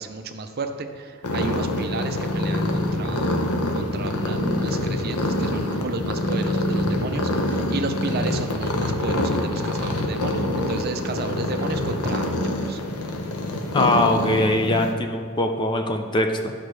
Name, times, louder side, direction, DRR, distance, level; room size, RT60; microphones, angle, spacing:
voice 1, 0.0-3.4 3.7-12.8, right 3 dB, 45° right, 7 dB, 0.5 m, -32 dB
sound 1, 1.2-14.9, left 1 dB, 80° left, 0.8 m, -25 dB
voice 2, 13.7-16.5, left 1 dB, 20° left, 5 dB, 0.4 m, -22 dB
12.0 x 5.2 x 3.2 m, 2.2 s
head